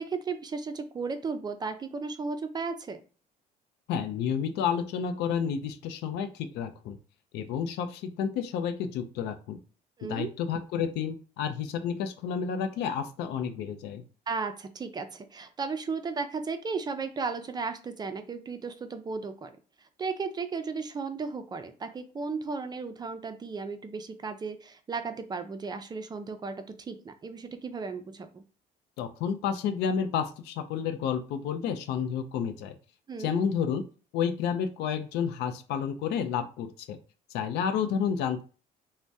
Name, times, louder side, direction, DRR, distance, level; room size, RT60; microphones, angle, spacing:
voice 1, 0.0-3.0 10.0-10.3 14.3-19.5 20.0-28.4 33.1-33.4, right 4 dB, 25° right, 8 dB, 0.4 m, -35 dB
voice 2, 3.9-7.0 7.3-9.6 10.1-14.0 29.0-32.8 33.2-33.8 34.1-37.0 37.3-38.4, left 7 dB, 85° left, 9 dB, 0.5 m, -30 dB
3.3 x 2.1 x 2.6 m, 0.36 s
cardioid pair, 110°, 17 cm